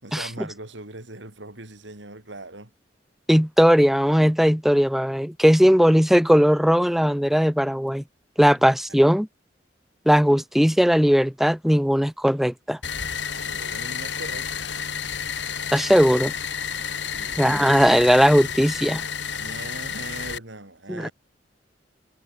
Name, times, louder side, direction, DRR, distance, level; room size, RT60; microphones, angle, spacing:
voice 1, 0.0-2.7 8.5-8.7 13.4-14.7 17.0-17.4 19.4-21.1, right 2 dB, 75° right, 4.5 m, -40 dB
voice 2, 3.3-8.0 8.4-9.3 10.1-12.8 15.7-16.3 17.4-19.0 20.9-21.1, equal, ahead, 0.6 m, -18 dB
sound 1, 12.8-20.4, left 7 dB, 70° left, 3.8 m, -31 dB
head